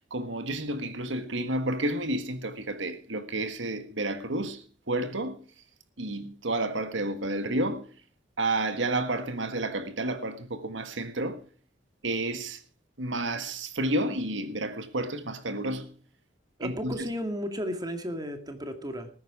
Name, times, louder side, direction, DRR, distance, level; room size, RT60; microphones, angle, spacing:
voice 1, 0.1-5.4 6.0-7.9 8.4-11.4 12.0-12.6 13.0-15.9 16.6-16.9, right 1 dB, 85° right, 1.5 m, -30 dB
voice 2, 16.6-19.1, equal, 20° right, 2.1 m, -34 dB
19.5 x 9.5 x 4.9 m
head